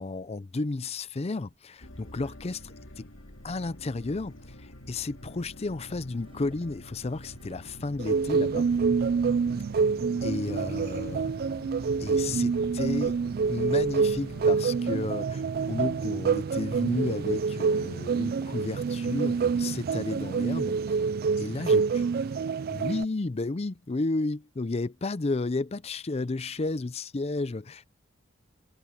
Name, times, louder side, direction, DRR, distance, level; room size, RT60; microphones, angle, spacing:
voice 1, 0.0-3.1 3.4-8.7 10.2-11.3 12.0-13.2 13.5-20.8 21.4-21.8 22.7-27.9, left 3 dB, 30° left, 0.5 m, -32 dB
sound 1, 1.8-14.5, left 1 dB, 75° left, 3.2 m, -47 dB
sound 2, 5.8-17.4, right 1 dB, 30° right, 5.0 m, -56 dB
sound 3, 8.0-23.1, right 5 dB, 50° right, 0.3 m, -27 dB
voice 2, 21.6-22.5, right 5 dB, 90° right, 6.2 m, -58 dB
head